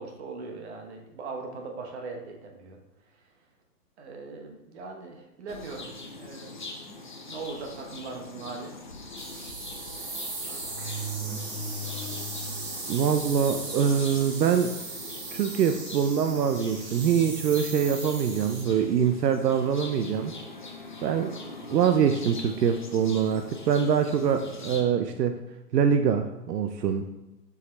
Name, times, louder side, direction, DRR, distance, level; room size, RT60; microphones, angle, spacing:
voice 1, 0.0-2.8 3.1-3.3 4.0-6.6 7.3-9.1 10.0-11.2 11.8-12.1, right 4 dB, 40° right, 2 dB, 1.1 m, -41 dB
sound 1, 5.5-24.8, left 3 dB, 35° left, 0.4 m, -43 dB
sound 2, 6.9-7.1 7.9-8.0 8.3-8.4 9.7-9.8 10.5-12.7 13.2-13.3 14.1-14.2 14.6-14.9 15.5-15.7 17.0-17.8 18.8-19.0, right 2 dB, 15° left, 1.9 m, -39 dB
sound 3, 9.2-18.6, right 3 dB, 25° right, 1.2 m, -38 dB
voice 2, 12.9-14.7 15.3-20.3 21.0-21.4 21.7-25.4 25.7-27.1, right 7 dB, 75° right, 7 dB, 0.6 m, -24 dB
6.8 x 4.8 x 3.2 m, 0.95 s
hypercardioid pair, 150°, 49 cm